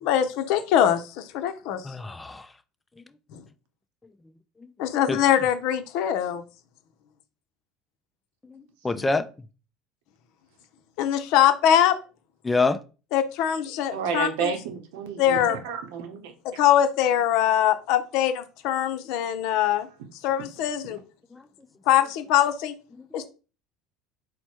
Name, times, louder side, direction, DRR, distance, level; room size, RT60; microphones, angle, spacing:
voice 1, 0.0-1.9 3.3-3.4 4.8-6.4 8.9-9.0 11.0-12.0 13.1-14.5 15.2-15.6 16.6-19.9 20.2-21.0 21.9-22.7 23.1-23.3, left 10 dB, 70° left, 0.6 m, -22 dB
voice 2, 1.8-2.5 5.1-5.2 8.5-9.3 12.4-12.8 21.3-21.4 23.0-23.1, left 3 dB, 10° left, 0.4 m, -26 dB
voice 3, 13.9-15.4 15.6-16.2, right 6 dB, 90° right, 0.7 m, -30 dB
4.4 x 2.1 x 4.4 m
cardioid pair, 130°, 0 cm